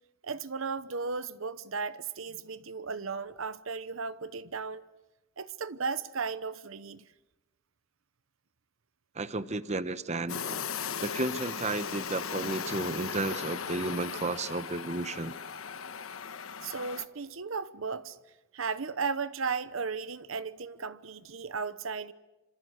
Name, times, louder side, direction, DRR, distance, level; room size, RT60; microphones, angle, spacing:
voice 1, 0.2-4.8 5.4-7.0 16.6-18.2 18.5-22.1, right 5 dB, 70° right, 0.9 m, -35 dB
voice 2, 9.1-10.6 11.0-15.3, right 2 dB, 35° right, 1.0 m, -33 dB
sound 1, 10.3-17.0, left 6 dB, 75° left, 1.3 m, -37 dB
27.5 x 26.5 x 8.1 m
head